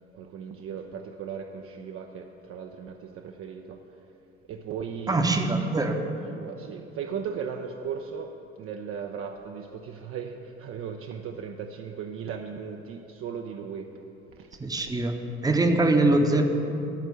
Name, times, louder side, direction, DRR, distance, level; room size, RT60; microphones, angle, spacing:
voice 1, 0.1-3.8 4.5-5.2 6.3-14.0 14.4-15.1, right 7 dB, 40° right, 3 dB, 0.5 m, -37 dB
voice 2, 5.1-6.0 14.6-15.2 15.4-16.4, right 2 dB, 10° right, 4 dB, 0.8 m, -23 dB
10.5 x 4.4 x 7.8 m, 3.0 s
figure-of-eight pair, 50°, 35 cm